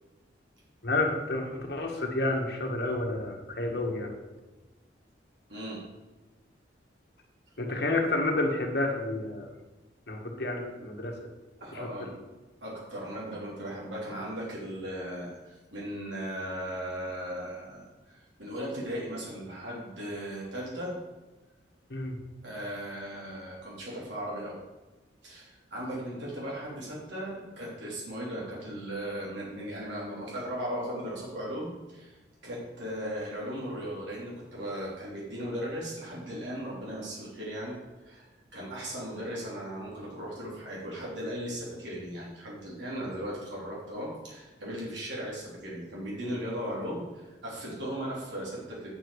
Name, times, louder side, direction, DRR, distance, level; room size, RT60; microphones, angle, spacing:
voice 1, 0.8-4.1 7.6-9.5 10.1-11.1 12.0-12.1 21.9-22.2, left 2 dB, 60° left, 1 dB, 1.7 m, -30 dB
voice 2, 11.6-12.1 12.6-20.9 22.4-24.6 25.2-37.7 38.0-38.3 38.5-48.9, equal, 80° right, -5 dB, 3.2 m, -37 dB
8.9 x 7.6 x 4.8 m, 1.2 s
head